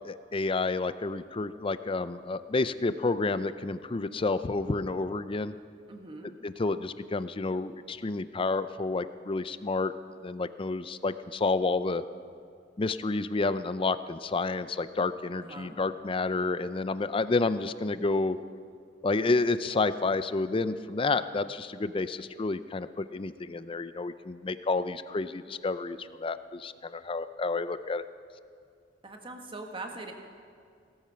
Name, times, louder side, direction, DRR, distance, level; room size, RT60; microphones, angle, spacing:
voice 1, 0.0-5.5 6.4-9.9 10.2-12.0 12.8-18.4 19.0-28.1, left 3 dB, 30° left, 13 dB, 0.5 m, -30 dB
voice 2, 5.9-6.3 15.4-15.8 29.0-30.1, right 2 dB, 30° right, 3 dB, 1.5 m, -41 dB
17.5 x 13.5 x 5.7 m, 2.2 s
head